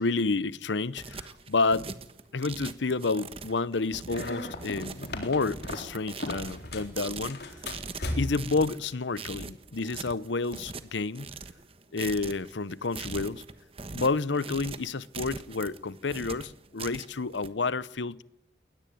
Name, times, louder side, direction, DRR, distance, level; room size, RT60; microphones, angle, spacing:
voice 1, 0.0-1.9 2.3-7.6 8.2-11.3 11.9-13.4 13.9-18.2, left 3 dB, 80° left, 0.8 m, -30 dB
sound 1, 0.7-17.5, right 4 dB, 30° right, 1.3 m, -42 dB
sound 2, 4.1-6.9 7.2-8.5, left 1 dB, 65° left, 3.8 m, -36 dB
21.0 x 20.5 x 9.3 m
head